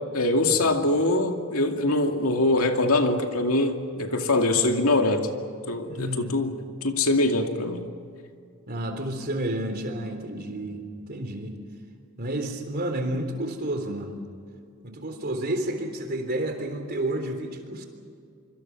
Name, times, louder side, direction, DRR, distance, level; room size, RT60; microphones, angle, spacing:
voice 1, 0.1-5.3 5.7-7.9, left 2 dB, 80° left, 4 dB, 2.4 m, -23 dB
voice 2, 5.9-6.4 8.7-10.8 11.1-11.6 12.2-14.2 14.8-17.9, right 1 dB, 45° right, 5 dB, 3.6 m, -30 dB
25.5 x 25.5 x 6.1 m, 2.3 s
head